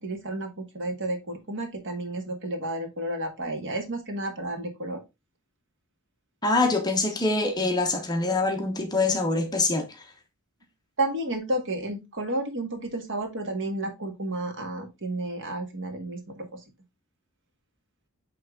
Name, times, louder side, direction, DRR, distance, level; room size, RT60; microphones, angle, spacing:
voice 1, 0.0-5.0 11.0-16.6, right 1 dB, 55° right, 1.7 m, -31 dB
voice 2, 6.4-9.9, left 3 dB, 20° left, 1.1 m, -24 dB
8.3 x 3.5 x 3.7 m
head